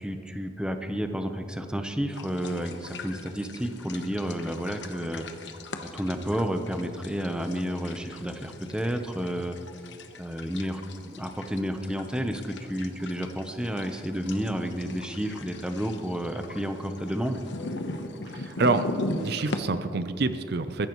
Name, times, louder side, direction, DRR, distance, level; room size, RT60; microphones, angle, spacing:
voice 1, 0.0-5.5 5.8-9.6 10.2-10.8 11.1-17.4, equal, 5° right, 6 dB, 0.8 m, -31 dB
sound 1, 2.1-19.6, left 2 dB, 70° left, 1.0 m, -40 dB
voice 2, 18.3-20.9, right 3 dB, 55° right, 11 dB, 0.5 m, -27 dB
21.0 x 14.5 x 3.1 m, 2.6 s
head